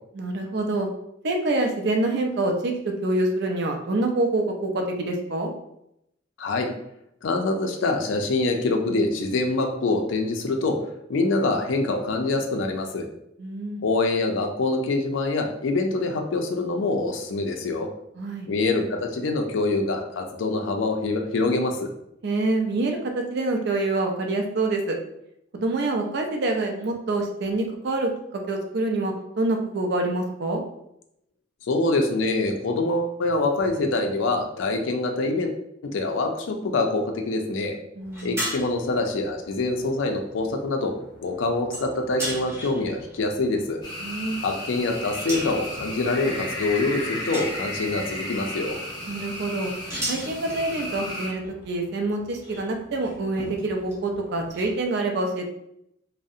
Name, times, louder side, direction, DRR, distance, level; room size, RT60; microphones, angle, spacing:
voice 1, 0.1-0.9 1.2-5.5 13.4-13.8 18.2-18.5 22.2-25.0 25.5-30.6 37.9-38.4 44.0-44.4 49.1-49.7 50.1-55.5, right 2 dB, 60° right, 3 dB, 0.4 m, -26 dB
voice 2, 6.4-6.7 7.2-10.8 11.1-13.1 13.8-17.9 18.5-21.9 31.7-35.6 35.8-37.8 38.2-40.9 41.2-43.8 44.4-48.8, left 2 dB, 80° left, 4 dB, 0.4 m, -25 dB
sound 1, 38.0-54.9, equal, 15° right, 0.7 m, -39 dB
sound 2, 43.8-51.3, left 1 dB, 20° left, 0.7 m, -34 dB
2.6 x 2.0 x 2.4 m, 0.78 s
head